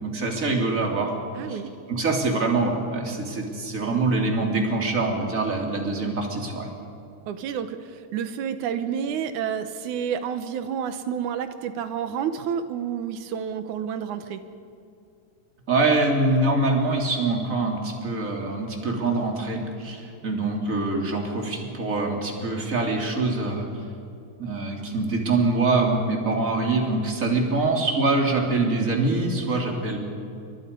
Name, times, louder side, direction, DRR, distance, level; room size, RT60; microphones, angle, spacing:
voice 1, 0.0-1.1 1.5-1.6 1.9-6.7 15.7-23.7 24.4-30.0, right 3 dB, 25° right, 1 dB, 3.4 m, -24 dB
voice 2, 1.4-1.7 7.3-14.4 27.3-27.5, right 8 dB, 85° right, 9 dB, 2.5 m, -30 dB
30.0 x 24.0 x 5.4 m, 2.6 s
omnidirectional pair, 3.4 m